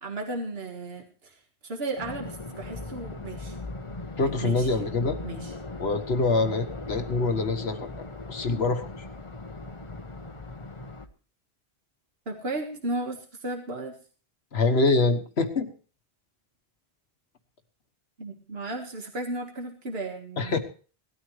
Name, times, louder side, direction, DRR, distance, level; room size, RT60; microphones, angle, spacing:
voice 1, 0.0-1.4 1.6-3.6 4.2-4.7 5.2-5.5 12.3-13.9 18.2-20.6, right 2 dB, 75° right, 2 dB, 2.0 m, -34 dB
sound 1, 2.0-11.1, left 2 dB, 30° left, 1.2 m, -39 dB
voice 2, 4.2-5.2 5.8-7.9 8.3-8.9 14.5-15.7 20.4-20.6, left 3 dB, 80° left, 7 dB, 1.6 m, -25 dB
18.5 x 13.0 x 3.3 m, 0.39 s
omnidirectional pair, 1.0 m